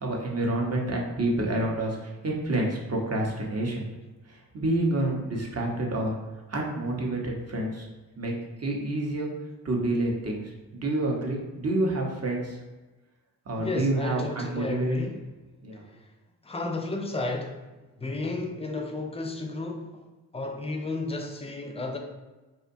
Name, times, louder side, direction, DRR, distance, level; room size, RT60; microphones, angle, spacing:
voice 1, 0.0-3.9 4.3-6.1 6.5-7.9 8.2-8.3 8.6-9.3 9.6-10.4 10.7-12.6 13.5-14.9 15.6-15.9, right 1 dB, 35° right, 0.7 m, -28 dB
voice 2, 13.6-15.2 16.4-17.7 18.0-20.0 20.3-22.0, left 2 dB, 15° left, 0.4 m, -32 dB
2.7 x 2.1 x 2.6 m
supercardioid pair, 40°, 44 cm